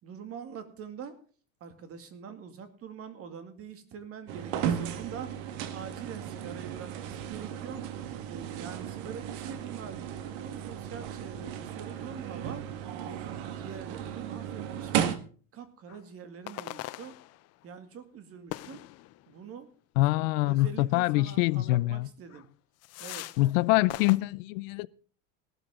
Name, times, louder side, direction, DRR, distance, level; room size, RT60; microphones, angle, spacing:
voice 1, 0.0-1.2 1.6-5.3 5.7-7.8 8.3-12.6 13.0-15.1 15.5-17.1 17.6-18.8 19.3-19.7 20.1-22.5 23.0-23.2, right 7 dB, 35° right, 2.3 m, -44 dB
Student residence - Hall near a vending machine, 4.3-15.2, right 9 dB, 70° right, 1.7 m, -35 dB
sound 1, 15.9-16.0 16.5-17.6 18.5-19.4 20.6-20.7 21.0-21.2 21.7-21.8 22.3-22.5 22.8-23.6 23.9-24.2, left 17 dB, 40° left, 0.7 m, -42 dB
voice 2, 20.0-22.1 23.4-24.9, left 19 dB, 80° left, 0.6 m, -25 dB
17.0 x 12.5 x 3.7 m
supercardioid pair, 140°, 38 cm